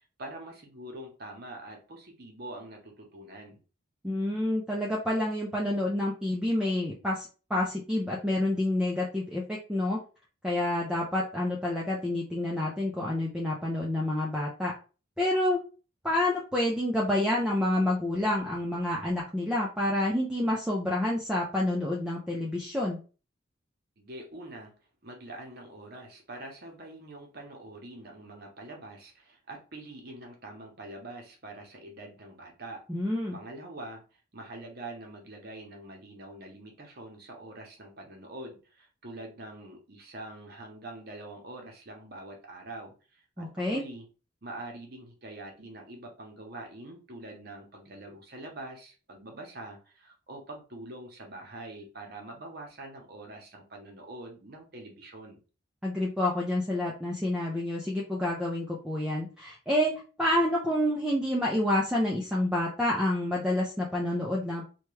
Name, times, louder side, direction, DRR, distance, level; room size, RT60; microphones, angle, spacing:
voice 1, 0.0-3.6 24.0-32.9 33.3-44.1 44.4-55.4, right 2 dB, 50° right, 1 dB, 0.8 m, -44 dB
voice 2, 4.0-10.0 10.4-14.7 15.2-15.6 16.0-23.0 32.9-33.4 43.4-43.8 55.8-64.6, left 1 dB, 5° right, -4 dB, 0.4 m, -28 dB
2.8 x 2.2 x 3.2 m, 0.35 s
head